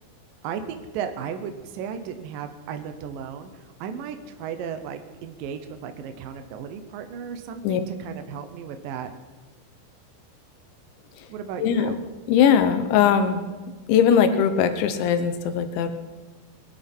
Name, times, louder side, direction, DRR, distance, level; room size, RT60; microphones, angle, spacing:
voice 1, 0.4-9.1 11.3-12.0, right 7 dB, 85° right, 7 dB, 1.9 m, -35 dB
voice 2, 11.6-11.9 12.3-13.4 13.9-15.9, left 8 dB, 75° left, 8 dB, 3.2 m, -20 dB
22.0 x 11.0 x 4.5 m, 1.3 s
omnidirectional pair, 5.5 m